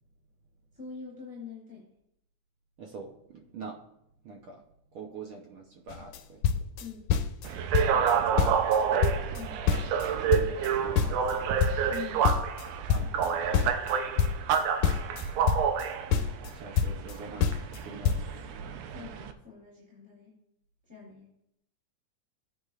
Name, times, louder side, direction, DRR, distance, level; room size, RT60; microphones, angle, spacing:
voice 1, 0.8-1.8 6.8-7.1 9.3-9.6 11.9-12.3 13.0-13.1 18.9-20.3 20.9-21.3, left 6 dB, ahead, -7 dB, 3.2 m, -44 dB
voice 2, 2.8-3.8 4.2-4.6 4.9-6.4 7.8-8.9 10.1-11.6 12.8-14.3 16.5-17.5 17.8-18.2, right 4 dB, 70° right, 1 dB, 1.3 m, -45 dB
sound 1, 5.9-6.2 6.4-7.5 7.7-8.1 8.4-10.1 10.3-13.3 13.5-15.8 16.1-17.1 17.4-17.8 18.0-18.2, left 7 dB, 80° left, 2.0 m, -26 dB
sound 2, 7.4-19.3, right 7 dB, 90° right, 2.3 m, -29 dB
16.0 x 9.5 x 2.5 m, 0.78 s
omnidirectional pair, 3.5 m